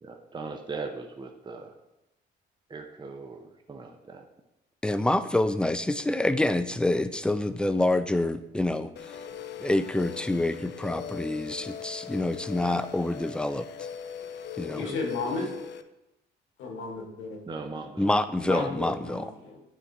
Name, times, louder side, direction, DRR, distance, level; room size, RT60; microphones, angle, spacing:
voice 1, 0.0-1.7 2.7-4.2 12.6-12.8 14.7-14.9 17.5-18.1, right 4 dB, 25° right, 3 dB, 0.7 m, -39 dB
voice 2, 4.8-9.2 9.6-13.9 14.6-14.9 18.0-19.3, left 1 dB, 5° left, 12 dB, 0.4 m, -27 dB
sound 1, 9.0-15.8, left 8 dB, 60° left, 0.5 m, -40 dB
voice 3, 14.5-15.5 16.6-17.4 18.4-19.6, left 3 dB, 85° left, 1 dB, 1.7 m, -34 dB
9.4 x 3.7 x 4.1 m, 0.94 s
cardioid pair, 90°, 20 cm